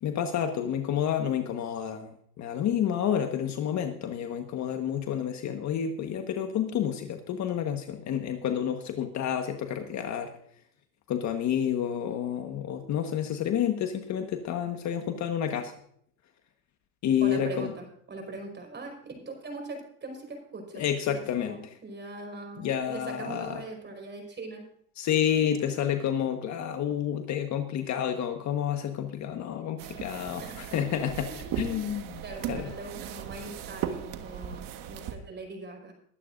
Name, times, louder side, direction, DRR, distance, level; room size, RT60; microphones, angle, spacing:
voice 1, 0.0-10.3 11.1-15.7 17.0-17.7 20.7-21.8 22.6-23.6 25.0-32.2 32.5-32.7, left 9 dB, 40° left, 6 dB, 1.4 m, -29 dB
voice 2, 17.2-20.8 21.4-24.7 30.1-30.6 31.3-31.8 32.2-35.9, right 3 dB, 25° right, 3 dB, 5.2 m, -41 dB
sound 1, 29.8-35.2, right 9 dB, 45° right, 1.6 m, -37 dB
22.5 x 12.0 x 2.6 m, 0.65 s
supercardioid pair, 110°, 45 cm